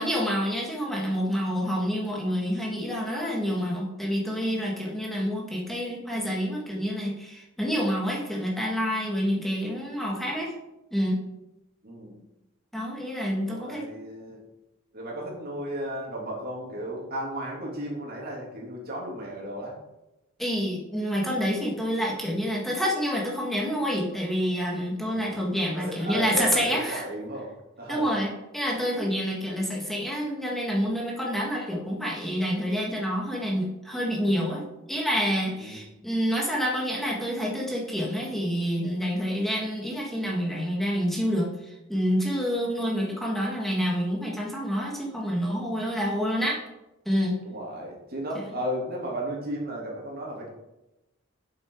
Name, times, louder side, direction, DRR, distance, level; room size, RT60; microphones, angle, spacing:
voice 1, 0.0-10.5 10.9-11.2 12.7-13.9 20.4-27.0 27.9-34.6 34.9-46.6 47.1-47.4 48.3-48.4, equal, ahead, -2 dB, 1.8 m, -28 dB
voice 2, 11.8-12.2 13.5-14.4 14.9-19.8 25.0-25.5 25.7-27.5 27.8-28.1 35.6-35.8 47.4-50.5, right 1 dB, 45° right, -2 dB, 2.9 m, -34 dB
8.2 x 7.7 x 4.7 m, 0.93 s
head